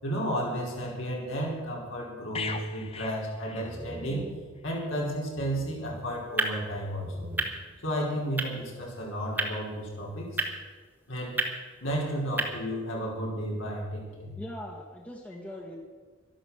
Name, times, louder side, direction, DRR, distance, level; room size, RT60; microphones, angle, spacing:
voice 1, 0.0-4.3 4.6-7.3 7.8-10.5 11.1-11.4 11.8-14.4, equal, 70° left, -2 dB, 4.5 m, -33 dB
sound 1, 2.3-4.2 4.6-4.8, left 5 dB, 30° left, 0.9 m, -39 dB
sound 2, 3.6-5.1 5.3-6.7 7.0-8.0, right 2 dB, 30° right, 0.8 m, -44 dB
sound 3, 5.8-12.5, right 2 dB, 10° right, 1.5 m, -35 dB
voice 2, 14.4-15.8, equal, 5° left, -1 dB, 1.7 m, -41 dB
12.5 x 11.5 x 7.2 m, 1.4 s
head